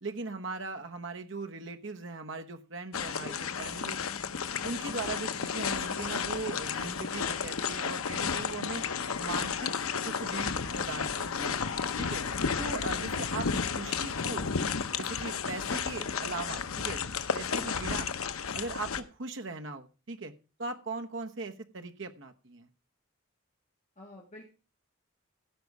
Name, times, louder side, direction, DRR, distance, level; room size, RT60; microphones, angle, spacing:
voice 1, 0.0-4.0 4.6-8.9 9.2-9.7 10.1-11.6 12.0-12.2 12.6-13.5 13.7-14.6 14.9-17.0 17.3-18.0 18.5-20.3 20.6-22.7, right 3 dB, 60° right, 6 dB, 1.1 m, -39 dB
sound 1, 2.9-19.0, left 6 dB, 85° left, 0.8 m, -32 dB
voice 2, 3.2-3.7 17.6-17.9 24.0-24.4, left 1 dB, 35° left, -3 dB, 2.1 m, -48 dB
16.0 x 5.4 x 4.7 m, 0.34 s
head